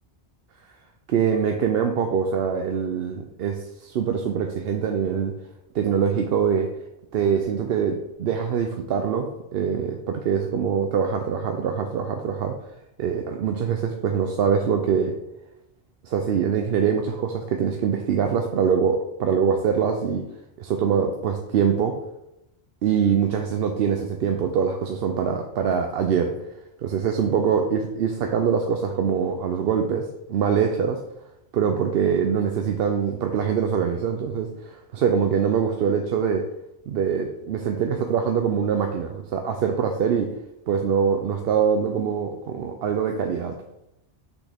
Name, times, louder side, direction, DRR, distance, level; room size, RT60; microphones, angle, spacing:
voice 1, 1.1-5.3 5.7-6.7 7.1-12.5 13.0-15.1 16.0-20.2 20.6-22.0 22.8-26.3 26.8-31.0 31.5-36.4 36.9-40.3 40.7-43.5, right 7 dB, 70° right, 4 dB, 0.8 m, -24 dB
6.1 x 5.8 x 3.4 m, 0.87 s
omnidirectional pair, 1.1 m